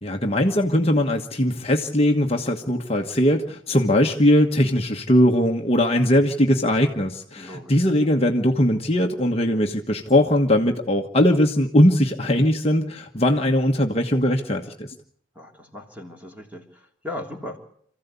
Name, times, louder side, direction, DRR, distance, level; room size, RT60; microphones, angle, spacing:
voice 1, 0.0-14.9, left 1 dB, 30° left, 2 dB, 1.4 m, -20 dB
voice 2, 7.4-7.8 15.3-17.6, left 1 dB, 5° right, 1 dB, 3.2 m, -37 dB
27.5 x 15.5 x 8.4 m, 0.65 s
head